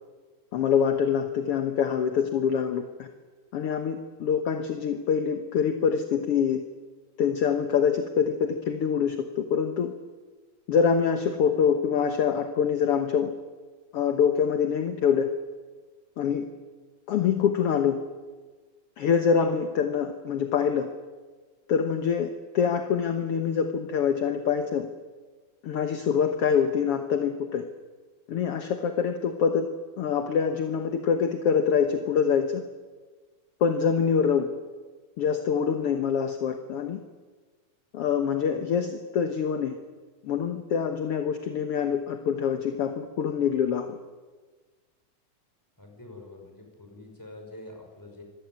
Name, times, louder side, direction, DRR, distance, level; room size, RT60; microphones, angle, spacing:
voice 1, 0.5-3.1 3.5-6.6 7.2-9.9 10.7-13.3 13.9-15.3 16.2-16.5 17.1-18.0 19.0-20.9 21.7-24.9 25.6-27.6 28.3-29.7 30.0-32.6 33.6-34.5 35.2-37.0 37.9-39.8 40.2-44.0, left 7 dB, 60° left, 6 dB, 1.7 m, -25 dB
voice 2, 45.8-48.2, left 2 dB, 5° left, 2 dB, 5.4 m, -46 dB
25.5 x 16.5 x 9.6 m, 1.4 s
omnidirectional pair, 3.9 m